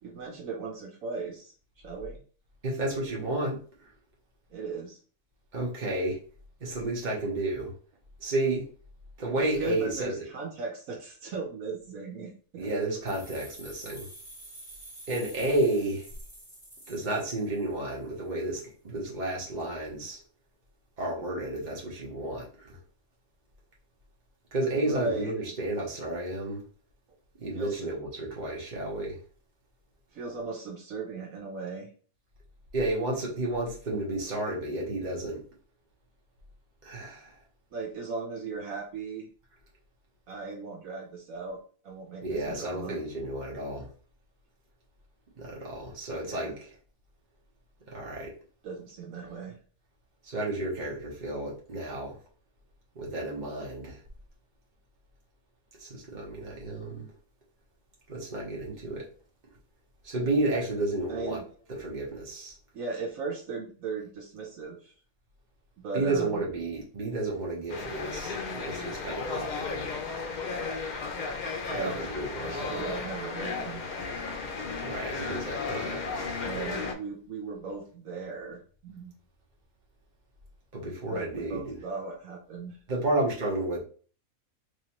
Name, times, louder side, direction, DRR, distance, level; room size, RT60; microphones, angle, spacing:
voice 1, 0.0-1.5 1.8-2.2 4.5-5.0 9.4-12.7 24.8-25.5 27.5-27.9 30.1-31.9 37.7-39.3 40.3-43.0 46.2-46.6 48.6-49.6 61.1-61.4 62.7-64.9 65.8-66.4 71.7-72.1 72.4-73.8 76.4-79.2 80.8-82.8, right 4 dB, 70° right, 0 dB, 1.2 m, -37 dB
voice 2, 2.6-3.6 5.5-6.2 6.6-7.7 8.2-8.7 9.2-10.1 12.6-14.1 15.1-16.0 16.9-20.2 21.0-22.8 24.5-26.6 27.4-29.2 32.7-35.4 36.8-37.3 42.2-43.9 45.4-46.7 47.9-48.4 50.2-52.2 52.9-54.0 55.8-57.1 58.1-59.1 60.0-61.4 61.7-62.5 65.9-69.9 71.7-72.7 74.8-76.3 80.7-81.8 82.9-83.8, right 2 dB, 35° right, -3 dB, 1.2 m, -31 dB
sound 1, 13.1-17.8, right 1 dB, 15° left, 2.0 m, -48 dB
sound 2, 67.7-76.9, left 4 dB, 85° left, 0.4 m, -34 dB
3.6 x 3.0 x 2.9 m, 0.40 s
omnidirectional pair, 1.5 m